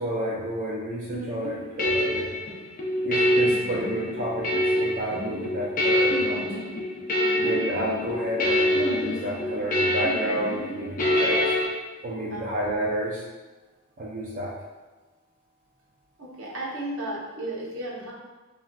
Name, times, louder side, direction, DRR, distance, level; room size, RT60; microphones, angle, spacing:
voice 1, 0.0-2.3 3.0-6.4 7.4-11.5 12.0-13.2 14.0-14.5, right 1 dB, 40° right, -5 dB, 0.3 m, -30 dB
sound 1, 1.1-11.7, left 1 dB, 40° left, 0.5 m, -25 dB
voice 2, 5.8-6.3 7.2-7.6 12.3-12.4 16.2-18.1, right 1 dB, 65° right, -4 dB, 0.7 m, -35 dB
3.3 x 2.4 x 2.2 m, 1.2 s
head